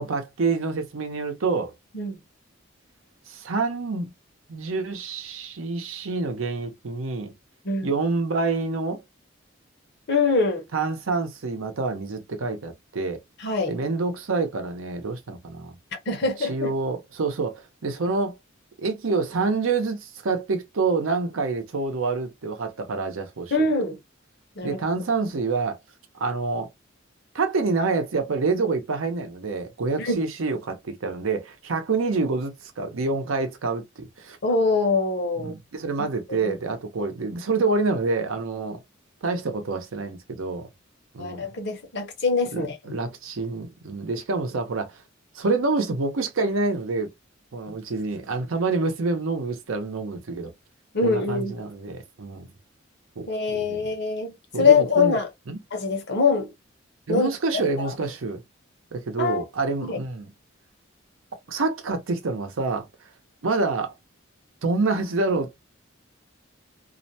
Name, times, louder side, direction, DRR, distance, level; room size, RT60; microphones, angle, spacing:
voice 1, 0.0-1.7 3.3-4.1 4.5-7.3 7.8-9.0 10.7-13.2 13.7-15.8 16.5-18.4 18.8-23.5 24.6-25.8 26.2-26.7 27.3-34.4 35.4-38.8 39.2-40.7 41.1-41.5 42.5-45.0 45.3-47.1 47.5-50.5 51.0-52.5 53.2-53.9 54.5-55.2 55.5-55.6 57.1-58.4 58.9-60.3 61.5-63.1 63.4-63.9 64.6-65.6, right 3 dB, 85° right, 0.7 m, -27 dB
voice 2, 10.1-10.6 13.4-13.8 16.1-16.7 23.5-24.0 24.6-24.8 30.0-30.2 34.4-35.5 36.0-36.5 41.2-42.8 50.9-51.5 53.3-55.3 55.7-56.5 57.1-57.3 57.8-57.9 59.2-59.4 59.8-60.0, left 4 dB, 55° left, 0.7 m, -23 dB
2.4 x 2.1 x 2.6 m
head